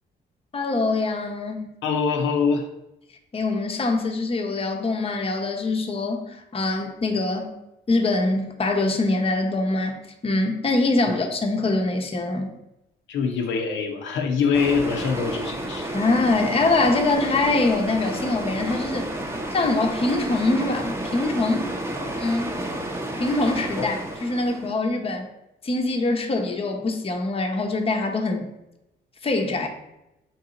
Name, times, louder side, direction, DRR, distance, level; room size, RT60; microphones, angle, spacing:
voice 1, 0.5-1.7 3.3-7.5 7.9-12.5 15.9-19.1 19.5-21.7 22.2-22.5 23.2-25.3 25.6-28.5 29.2-29.7, left 2 dB, 30° left, 3 dB, 0.7 m, -24 dB
voice 2, 1.8-2.7 13.1-15.9 23.8-23.9, left 5 dB, 80° left, 3 dB, 0.6 m, -24 dB
sound 1, 14.5-24.7, right 1 dB, 15° right, 0.7 m, -31 dB
3.9 x 2.8 x 3.7 m, 0.90 s
cardioid pair, 75°, 19 cm